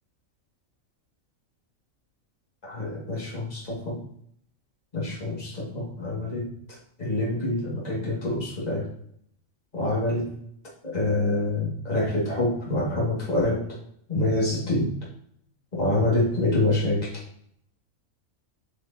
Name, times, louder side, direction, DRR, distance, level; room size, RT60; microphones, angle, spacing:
voice 1, 2.6-4.0 4.9-6.5 7.0-8.9 9.7-10.3 10.8-13.6 14.1-14.9 15.7-17.1, left 2 dB, 30° left, -6 dB, 2.2 m, -26 dB
8.2 x 4.8 x 2.8 m, 0.69 s
omnidirectional pair, 1.5 m